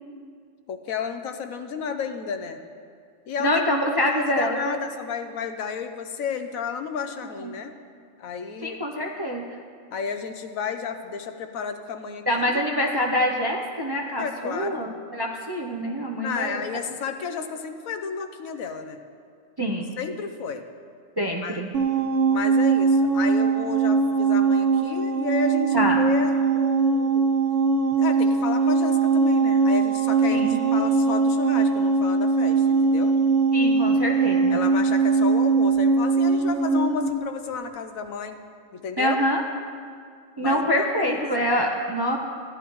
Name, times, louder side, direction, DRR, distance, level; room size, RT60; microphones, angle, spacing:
voice 1, 0.7-2.6 3.3-3.6 4.0-7.7 8.2-8.8 9.9-12.6 14.2-14.8 16.2-19.0 20.0-20.6 21.4-21.6 22.3-27.3 28.0-33.2 34.5-38.4 38.7-39.2 40.4-41.2, left 6 dB, 80° left, 7 dB, 1.2 m, -32 dB
voice 2, 3.4-4.8 7.4-7.5 8.6-9.4 12.3-16.6 19.6-19.9 21.2-21.7 25.7-26.0 30.3-30.6 33.5-34.6 39.0-39.4 40.4-42.2, equal, 30° right, 0 dB, 0.5 m, -25 dB
sound 1, 21.7-37.1, right 4 dB, 50° right, 0.8 m, -21 dB
15.5 x 11.0 x 3.1 m, 2.2 s
omnidirectional pair, 1.4 m